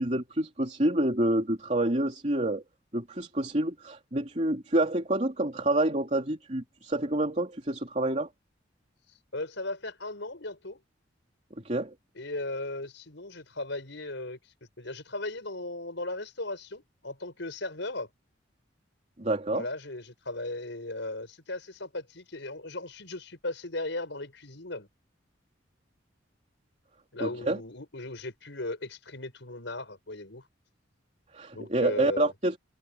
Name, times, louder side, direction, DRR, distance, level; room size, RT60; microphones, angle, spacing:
voice 1, 0.0-2.6 2.9-8.3 11.6-11.9 19.2-19.6 27.2-27.6 31.3-32.5, right 1 dB, 35° right, 3.0 m, -28 dB
voice 2, 9.3-10.8 12.1-18.1 19.5-24.9 27.1-30.4 31.5-32.3, left 2 dB, 70° left, 6.1 m, -37 dB
head